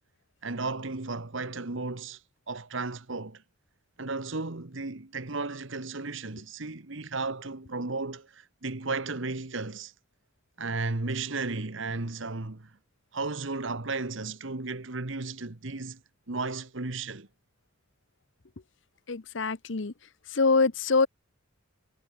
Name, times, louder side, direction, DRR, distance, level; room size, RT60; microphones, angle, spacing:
voice 1, 0.4-2.2 2.5-3.4 4.0-9.9 10.6-12.7 13.1-16.0 16.3-17.3, right 3 dB, 65° right, 1.4 m, -34 dB
voice 2, 19.1-19.9 20.3-21.1, left 4 dB, 60° left, 0.9 m, -24 dB
head